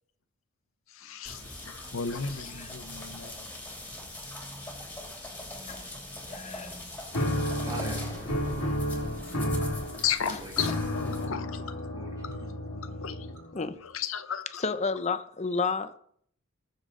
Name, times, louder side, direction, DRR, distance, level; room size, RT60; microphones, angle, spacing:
voice 1, 0.9-3.4 10.0-13.3 13.8-14.6, left 7 dB, 65° left, 0.7 m, -35 dB
sound 1, 1.2-11.2, left 1 dB, 10° left, 2.8 m, -41 dB
voice 2, 6.3-6.8 10.3-10.4 12.7-12.8 13.5-13.8 14.6-16.0, left 4 dB, 30° left, 0.7 m, -31 dB
sound 2, 7.1-13.6, left 1 dB, 80° left, 1.8 m, -32 dB
voice 3, 7.6-8.3 8.9-11.0 11.9-12.2, right 1 dB, 20° right, 4.0 m, -44 dB
20.0 x 7.0 x 3.9 m
head